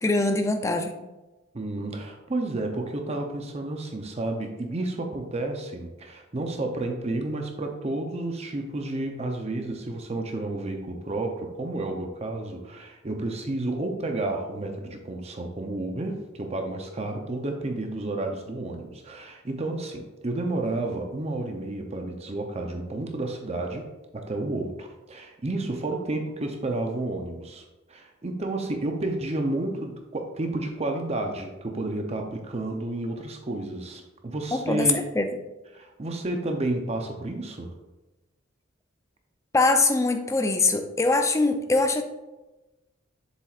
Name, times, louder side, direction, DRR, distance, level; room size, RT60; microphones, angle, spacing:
voice 1, 0.0-1.0 34.5-35.3 39.5-42.0, left 3 dB, 15° left, 6 dB, 0.5 m, -23 dB
voice 2, 1.5-23.8 24.1-27.6 27.9-35.0 35.7-37.7, right 2 dB, 30° right, 3 dB, 0.6 m, -31 dB
7.2 x 7.2 x 2.4 m, 1.1 s
head